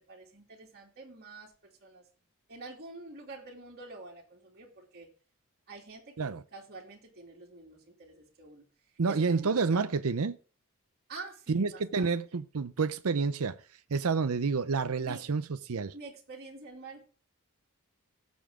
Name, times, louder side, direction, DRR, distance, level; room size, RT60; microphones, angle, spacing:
voice 1, 0.1-2.1 2.5-5.1 5.7-9.9 11.1-12.2 15.0-15.2 15.9-17.0, right 3 dB, 45° right, 2.8 m, -47 dB
voice 2, 9.0-10.4 11.5-13.6 13.9-15.9, right 4 dB, 70° right, 0.6 m, -29 dB
17.5 x 7.2 x 3.7 m
head